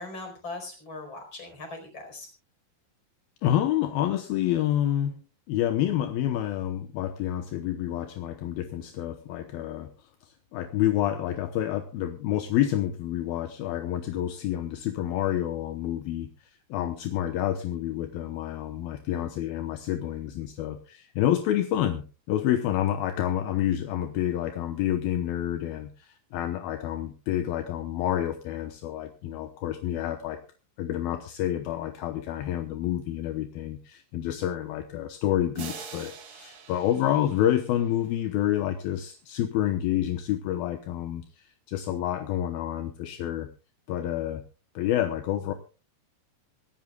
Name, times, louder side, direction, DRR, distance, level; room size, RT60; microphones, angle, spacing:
voice 1, 0.0-2.3, left 2 dB, 30° left, 5 dB, 5.1 m, -40 dB
voice 2, 3.4-5.2 5.5-9.9 10.2-30.4 30.8-43.5 43.9-44.4 44.7-45.5, left 12 dB, 75° left, 7 dB, 2.6 m, -28 dB
sound 1, 35.5-38.4, right 6 dB, 50° right, 1.7 m, -44 dB
25.5 x 13.0 x 2.3 m, 0.33 s
omnidirectional pair, 4.6 m